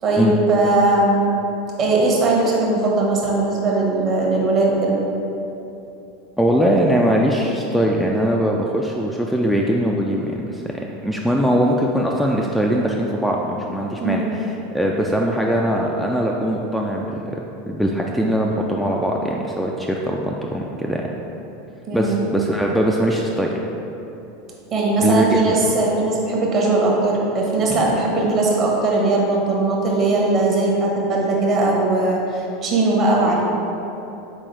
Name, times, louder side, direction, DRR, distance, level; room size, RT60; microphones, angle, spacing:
voice 1, 0.0-1.2 1.8-4.9 14.0-14.3 21.9-22.2 24.7-33.4, right 2 dB, 40° right, -2 dB, 0.9 m, -19 dB
voice 2, 6.4-10.6 11.0-17.0 17.3-17.4 17.7-21.0 21.9-23.5 25.0-25.6, equal, ahead, -1 dB, 0.3 m, -21 dB
4.1 x 3.7 x 3.2 m, 2.9 s
figure-of-eight pair, 80°, 0 cm